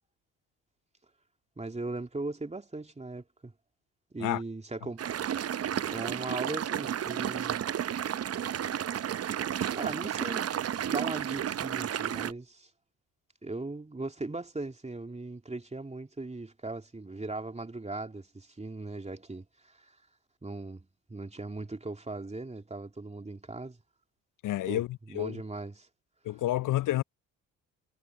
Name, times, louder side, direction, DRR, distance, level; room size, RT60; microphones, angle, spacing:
voice 1, 1.6-3.5 4.1-5.1 5.9-7.6 9.7-12.7 13.4-19.9 20.4-23.8 24.7-24.8 25.1-25.9, right 2 dB, 15° right, 2.7 m, -39 dB
sound 1, 5.0-12.3, right 9 dB, 35° right, 0.7 m, -32 dB
voice 2, 24.4-25.4 26.2-27.0, left 14 dB, 50° left, 0.6 m, -29 dB
hypercardioid pair, 50°, 41 cm